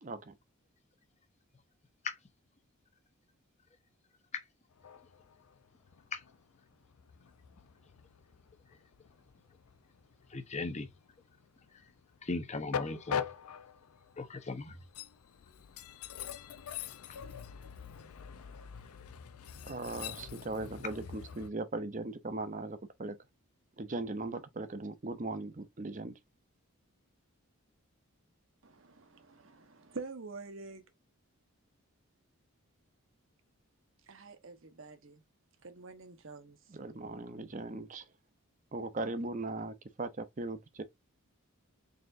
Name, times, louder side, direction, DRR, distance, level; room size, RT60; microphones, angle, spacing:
voice 1, 0.0-0.3 19.7-23.2 23.8-26.1 36.7-38.1 38.7-40.8, right 2 dB, 35° right, 0.6 m, -39 dB
Train, 4.7-21.5, left 8 dB, 85° left, 0.5 m, -44 dB
voice 2, 10.3-10.9 11.7-11.9 12.2-13.3 14.2-14.8 17.1-17.2, left 3 dB, 30° left, 0.7 m, -38 dB
voice 3, 28.6-30.8 34.1-35.2 35.6-36.6, right 4 dB, 65° right, 0.9 m, -47 dB
4.1 x 3.8 x 2.5 m
head